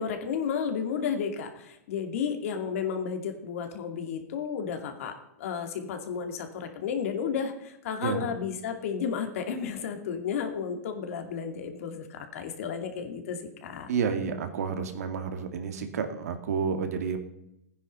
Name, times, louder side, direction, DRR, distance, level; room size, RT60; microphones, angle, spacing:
voice 1, 0.0-13.9, left 7 dB, 60° left, 6 dB, 2.5 m, -32 dB
voice 2, 13.9-17.2, right 6 dB, 75° right, 6 dB, 2.3 m, -30 dB
16.0 x 9.9 x 5.5 m, 0.84 s
hypercardioid pair, 145°, 9 cm